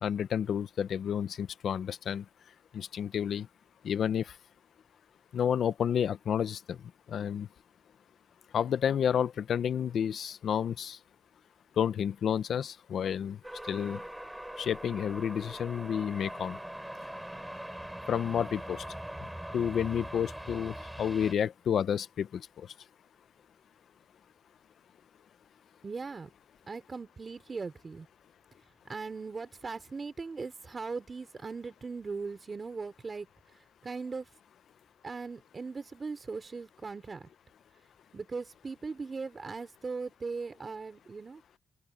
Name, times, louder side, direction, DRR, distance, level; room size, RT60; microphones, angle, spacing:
voice 1, 0.0-2.2 2.7-3.5 3.8-4.3 5.3-6.8 7.1-7.5 8.5-11.0 11.8-13.4 13.7-14.0 14.6-16.6 18.1-18.8 19.2-19.3 19.5-22.7, left 8 dB, 75° left, 0.7 m, -30 dB
sound 1, 13.4-21.3, right 1 dB, 5° right, 3.5 m, -42 dB
voice 2, 25.8-26.3 26.7-28.1 28.9-33.3 33.8-34.3 35.0-37.3 38.1-41.4, right 4 dB, 40° right, 4.7 m, -39 dB
open air
cardioid pair, 90°, 0 cm